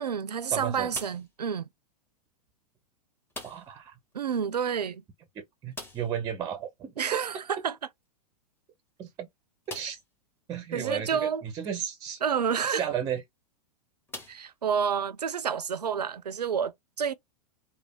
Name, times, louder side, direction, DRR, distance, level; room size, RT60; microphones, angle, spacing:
voice 1, 0.0-1.7 4.1-5.0 7.0-7.8 10.7-11.4 12.2-12.9 14.3-17.1, right 7 dB, 80° right, 0.4 m, -29 dB
voice 2, 0.5-0.9 3.4-3.9 5.4-7.2 9.0-9.3 9.7-10.0 10.5-12.2 12.7-13.2, right 8 dB, 20° right, 0.5 m, -34 dB
sound 1, 0.9-1.5 3.3-3.9 4.1-4.2 4.5-4.6 5.7-6.3 8.0-8.1 8.7-8.8 9.6-10.2 10.9-11.0 13.0-13.2 14.1-15.0, left 2 dB, 10° left, 0.7 m, -44 dB
3.2 x 2.1 x 2.2 m
figure-of-eight pair, 100°, 20 cm